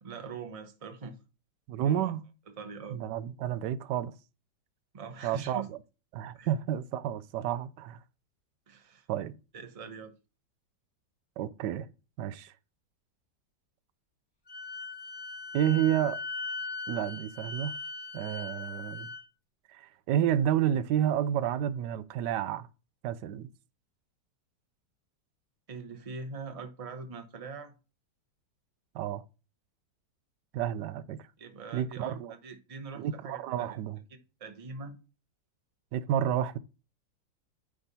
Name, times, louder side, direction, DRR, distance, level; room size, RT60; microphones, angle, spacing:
voice 1, 0.0-1.2 1.8-2.1 2.5-3.0 4.9-5.7 6.3-6.5 8.7-9.1 9.5-10.1 25.7-27.7 31.4-33.8 34.4-35.0, right 4 dB, 30° right, 0.6 m, -42 dB
voice 2, 1.7-2.2 2.9-4.1 5.2-5.8 6.1-8.0 9.1-9.3 11.4-11.9 12.2-12.5 15.5-16.2 16.9-17.8 18.1-19.1 19.7-22.7 23.0-23.5 28.9-29.2 30.5-31.2 31.7-32.3 33.0-34.0 35.9-36.6, right 10 dB, 75° right, 1.2 m, -30 dB
Wind instrument woodwind instrument, 14.5-19.2, left 3 dB, 35° left, 0.4 m, -39 dB
9.6 x 3.6 x 4.1 m
omnidirectional pair, 1.9 m